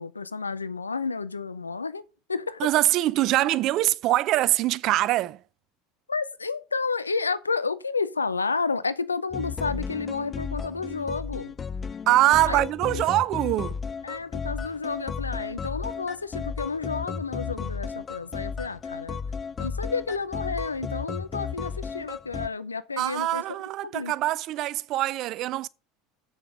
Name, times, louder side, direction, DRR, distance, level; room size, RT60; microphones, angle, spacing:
voice 1, 0.0-2.0 2.3-2.7 6.1-11.5 12.5-13.0 14.0-19.2 19.6-23.4 23.8-24.1, left 4 dB, 90° left, 0.6 m, -31 dB
voice 2, 2.6-5.4 12.1-13.8 23.0-25.7, right 15 dB, 50° right, 0.5 m, -23 dB
sound 1, 9.3-22.5, left 5 dB, 30° left, 0.4 m, -34 dB
7.8 x 6.4 x 5.1 m
figure-of-eight pair, 75°, 0 cm